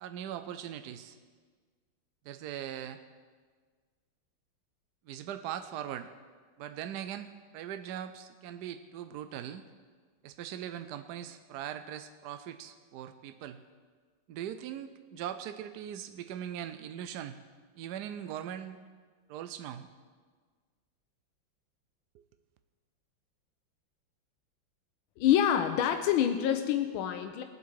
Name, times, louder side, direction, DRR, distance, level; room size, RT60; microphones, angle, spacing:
voice 1, 0.0-1.2 2.2-3.0 5.1-6.1 6.6-7.3 7.5-9.6 10.2-13.6 14.3-17.4 17.8-18.8 19.3-19.9 22.1-22.2, right 10 dB, 75° right, 8 dB, 1.0 m, -40 dB
voice 2, 25.2-27.4, left 10 dB, 85° left, 7 dB, 1.5 m, -26 dB
20.0 x 8.0 x 4.7 m, 1.6 s
omnidirectional pair, 2.2 m